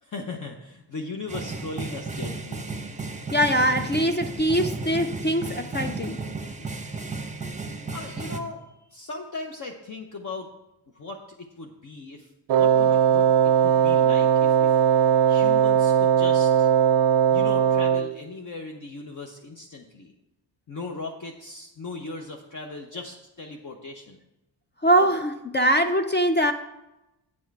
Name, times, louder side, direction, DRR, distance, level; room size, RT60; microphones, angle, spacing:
voice 1, 0.0-2.7 7.9-8.7 8.9-10.5 11.0-14.8 15.3-16.7 17.3-20.1 20.7-24.2, left 3 dB, 40° left, 2 dB, 0.9 m, -38 dB
sound 1, 1.3-8.4, right 3 dB, 15° right, 0.8 m, -34 dB
voice 2, 3.3-6.2 24.8-26.5, right 1 dB, 25° left, 6 dB, 0.5 m, -22 dB
Wind instrument woodwind instrument, 12.5-18.2, right 8 dB, 60° right, 0.5 m, -19 dB
8.7 x 6.3 x 4.6 m, 0.94 s
cardioid pair, 80°, 45 cm